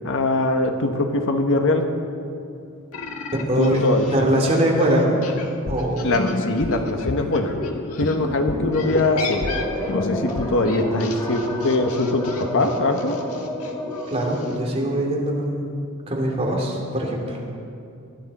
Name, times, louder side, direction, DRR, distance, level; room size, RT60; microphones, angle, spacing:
voice 1, 0.0-1.8 3.6-4.0 6.0-7.5 8.0-9.4 9.9-13.1, left 2 dB, 60° left, 5 dB, 1.2 m, -22 dB
sound 1, 2.9-8.2 8.7-14.6, left 4 dB, 80° left, 1.6 m, -36 dB
voice 2, 3.5-5.2 5.7-6.1 14.1-15.7 16.1-17.4, right 1 dB, 30° right, -2 dB, 2.7 m, -22 dB
sound 2, 5.6-10.6, left 3 dB, 45° left, 0.6 m, -30 dB
sound 3, 8.1-14.6, equal, 15° left, 2.6 m, -31 dB
20.5 x 13.0 x 4.2 m, 2.5 s
head